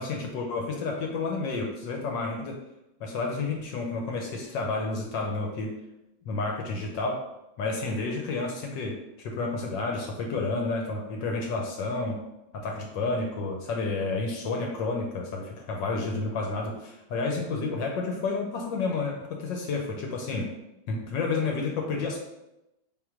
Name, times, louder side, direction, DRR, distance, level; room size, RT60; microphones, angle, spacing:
voice 1, 0.0-2.6 3.0-5.8 6.3-7.2 7.6-12.2 12.5-20.5 20.9-22.2, left 3 dB, 70° left, 1 dB, 1.2 m, -30 dB
3.6 x 2.9 x 4.8 m, 0.91 s
omnidirectional pair, 2.3 m